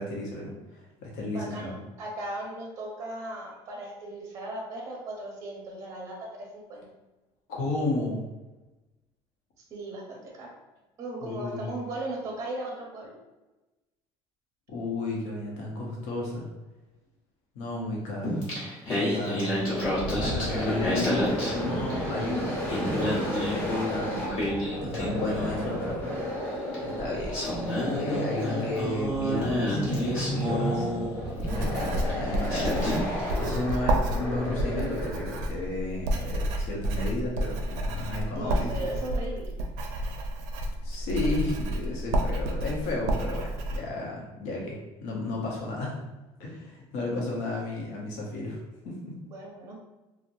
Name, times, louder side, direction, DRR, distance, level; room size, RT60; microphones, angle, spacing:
voice 1, 0.0-1.7 7.5-8.2 11.2-11.7 14.7-16.5 17.5-18.5 18.9-19.5 20.2-22.6 22.9-24.5 24.8-26.0 26.8-27.4 27.9-30.9 31.4-32.9 33.4-38.9 40.8-46.0 46.4-48.6 48.8-49.2, left 2 dB, 80° left, -2 dB, 0.9 m, -33 dB
voice 2, 1.3-6.8 9.7-10.5 11.0-13.1 20.6-20.7 38.3-39.5 49.3-49.8, right 1 dB, 30° right, -1 dB, 0.6 m, -37 dB
Singing, 18.2-22.2 22.5-25.7 26.7-26.8 27.3-31.5 32.1-32.2 32.5-33.3, left 1 dB, 50° left, 1.2 m, -30 dB
sound 1, 19.6-35.6, equal, 20° left, 0.9 m, -33 dB
Writing, 31.4-43.8, right 1 dB, 85° right, 0.4 m, -30 dB
2.9 x 2.1 x 2.6 m, 1.1 s
cardioid pair, 175°, 11 cm